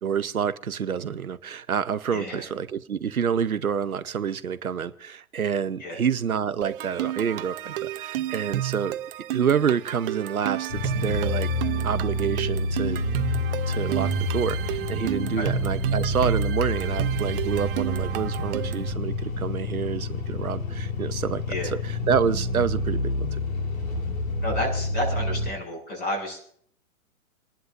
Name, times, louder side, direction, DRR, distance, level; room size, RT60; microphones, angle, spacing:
voice 1, 0.0-9.0 9.3-11.5 11.8-13.0 13.7-23.4, right 7 dB, 85° right, 13 dB, 0.8 m, -28 dB
voice 2, 2.1-2.4 5.8-6.0 15.4-15.5 21.5-21.7 24.4-26.4, equal, 25° left, 2 dB, 7.0 m, -30 dB
sound 1, 6.6-18.9, right 13 dB, 40° right, 0.8 m, -32 dB
sound 2, 10.7-25.5, left 1 dB, 75° left, 3.5 m, -28 dB
28.5 x 11.0 x 2.6 m, 0.63 s
figure-of-eight pair, 115°, 42 cm